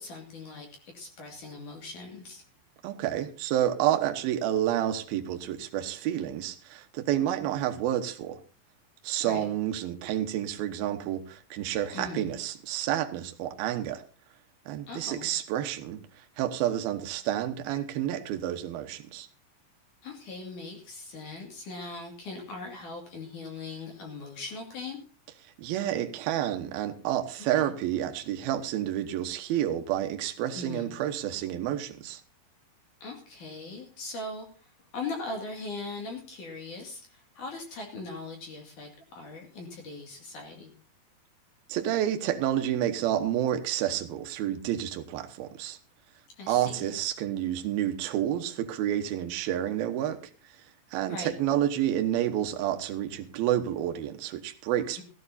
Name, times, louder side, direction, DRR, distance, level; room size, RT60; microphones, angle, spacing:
voice 1, 0.0-2.4 9.2-9.5 11.9-12.3 14.9-15.3 20.0-25.0 27.5-27.7 30.5-30.9 33.0-40.7 46.4-46.9 51.1-51.3 55.0-55.1, left 3 dB, 50° left, 3.4 m, -40 dB
voice 2, 2.8-8.4 9.0-14.0 14.7-16.0 16.4-19.3 25.6-32.2 41.7-45.8 46.5-50.2 50.9-55.0, right 11 dB, 70° right, 2.8 m, -29 dB
18.0 x 14.5 x 2.7 m
omnidirectional pair, 5.1 m